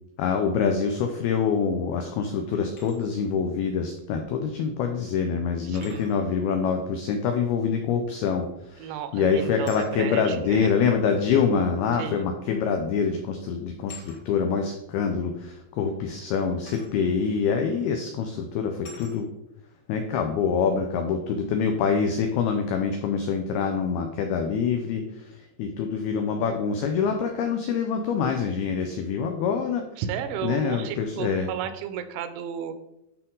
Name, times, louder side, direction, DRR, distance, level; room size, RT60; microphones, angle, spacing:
voice 1, 0.2-19.3 19.9-29.9 30.4-31.5, left 6 dB, 90° left, 5 dB, 2.2 m, -25 dB
sound 1, 2.5-3.0 4.5-4.6 5.7-6.2 8.4-8.7 9.6-9.9 11.1-11.2 12.5-12.7 13.0-13.2 13.9-14.2 16.7-16.9 17.7-17.9 18.8-19.2, left 3 dB, 40° left, 2.0 m, -47 dB
voice 2, 5.7-6.0 8.8-10.7 11.9-12.3 30.0-32.7, right 8 dB, 85° right, 9 dB, 3.1 m, -33 dB
12.0 x 4.5 x 3.8 m, 0.85 s
omnidirectional pair, 5.4 m